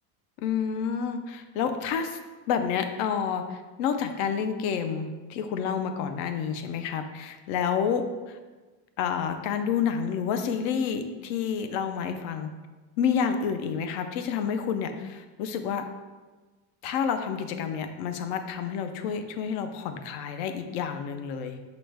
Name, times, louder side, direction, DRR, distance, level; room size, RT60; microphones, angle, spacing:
voice 1, 0.4-2.2 2.5-8.4 9.0-12.5 13.0-15.8 16.8-21.6, left 7 dB, 65° left, 8 dB, 0.5 m, -29 dB
4.9 x 2.1 x 4.6 m, 1.3 s
cardioid pair, 165°, 49 cm